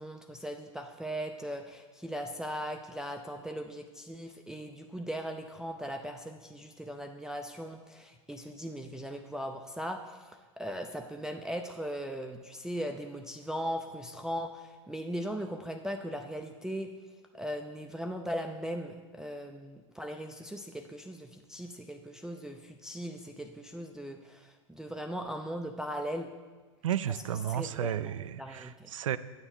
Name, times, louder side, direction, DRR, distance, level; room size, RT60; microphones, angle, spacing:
voice 1, 0.0-16.9 17.3-26.3 27.5-28.9, equal, 5° right, 3 dB, 0.4 m, -39 dB
voice 2, 26.8-29.2, right 10 dB, 85° right, 15 dB, 0.4 m, -33 dB
8.6 x 7.0 x 4.3 m, 1.3 s
hypercardioid pair, 105°, 16 cm